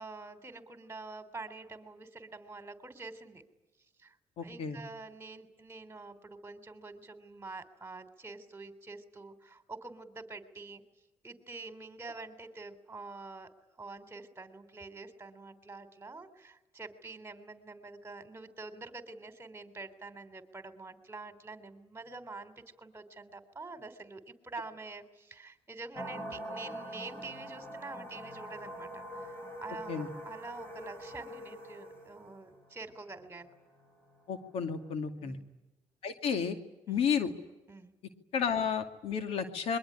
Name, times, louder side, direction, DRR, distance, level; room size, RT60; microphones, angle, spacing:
voice 1, 0.0-3.4 4.0-4.2 4.4-10.8 11.2-13.5 13.8-33.5 35.2-35.5 36.9-37.0 37.7-37.9, right 3 dB, 20° right, 9 dB, 3.3 m, -46 dB
voice 2, 4.4-4.8 29.9-30.1 34.3-35.4 36.0-36.6 36.9-37.3 38.3-39.8, left 7 dB, 75° left, 8 dB, 2.4 m, -32 dB
sound 1, 26.0-34.9, equal, 20° left, 5.3 m, -44 dB
26.0 x 22.5 x 10.0 m, 1.0 s
cardioid pair, 90°, 10 cm